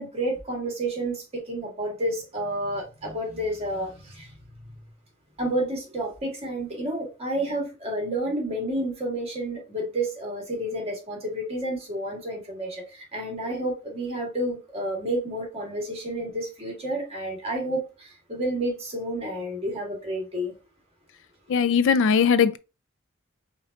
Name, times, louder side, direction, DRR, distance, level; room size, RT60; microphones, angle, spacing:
voice 1, 0.0-4.3 5.4-20.5, right 1 dB, 30° right, 1.8 m, -30 dB
voice 2, 21.5-22.6, left 6 dB, 65° left, 0.4 m, -19 dB
5.0 x 2.6 x 4.0 m
head